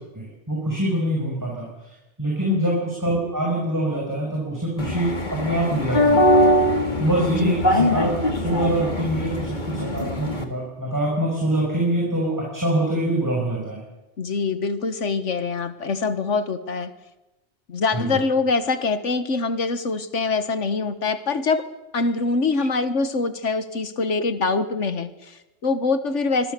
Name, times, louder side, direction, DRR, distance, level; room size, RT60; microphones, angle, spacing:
voice 1, 0.1-1.7 2.2-6.2 7.0-13.8 17.9-18.2 22.5-22.6, right 1 dB, 15° right, -2 dB, 5.8 m, -24 dB
sound 1, 4.8-10.4, left 1 dB, 40° left, 2.4 m, -21 dB
voice 2, 14.2-16.9 17.7-21.6 21.9-26.5, left 4 dB, 80° left, 11 dB, 1.7 m, -24 dB
26.0 x 21.0 x 6.9 m, 1.0 s
omnidirectional pair, 1.2 m